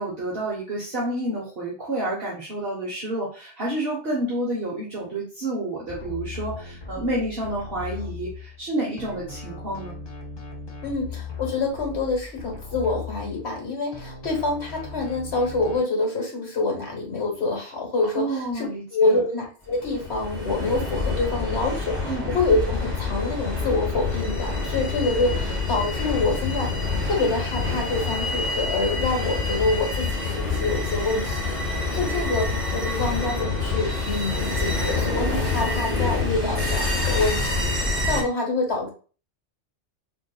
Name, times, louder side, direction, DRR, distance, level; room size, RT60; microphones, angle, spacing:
voice 1, 0.0-10.0 18.2-19.2 22.0-22.3, right 1 dB, 55° right, -5 dB, 1.3 m, -29 dB
sound 1, 5.9-8.7 9.0-13.6 13.9-15.8, left 4 dB, 30° left, 0.6 m, -38 dB
voice 2, 10.8-26.7 27.0-31.5 31.9-38.9, left 3 dB, 65° left, -1 dB, 1.8 m, -26 dB
sound 2, 19.7-38.2, left 3 dB, 20° right, 1.8 m, -27 dB
4.3 x 3.7 x 2.2 m, 0.38 s
omnidirectional pair, 1.2 m